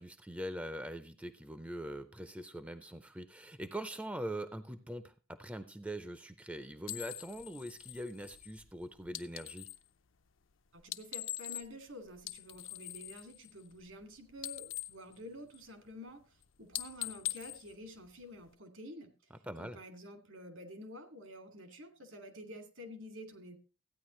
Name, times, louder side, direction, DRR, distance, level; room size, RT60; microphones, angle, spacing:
voice 1, 0.0-9.7 19.4-19.8, right 1 dB, 5° right, 11 dB, 0.5 m, -43 dB
sound 1, 6.8-9.9 10.8-11.9 12.2-14.1 14.3-15.9 16.2-16.4 16.7-18.5, left 14 dB, 65° left, 0.6 m, -43 dB
voice 2, 10.7-19.3 19.6-23.6, left 1 dB, 75° right, 6 dB, 2.2 m, -49 dB
14.5 x 9.4 x 3.1 m, 0.33 s
head